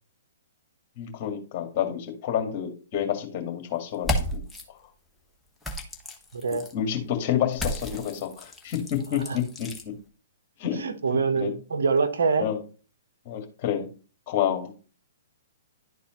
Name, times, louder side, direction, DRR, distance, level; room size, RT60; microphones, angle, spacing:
voice 1, 1.0-4.4 6.7-9.7 10.6-10.8 11.4-11.5 12.4-12.6 13.3-13.9 14.3-14.7, left 9 dB, 40° left, 1.9 m, -29 dB
sound 1, 3.9-4.6 5.6-6.7 7.5-9.8, left 1 dB, 5° left, 1.2 m, -33 dB
voice 2, 6.3-6.7 9.1-9.4 10.8-12.5, right 5 dB, 75° right, 1.1 m, -25 dB
11.5 x 4.1 x 3.0 m
hypercardioid pair, 125°, 0 cm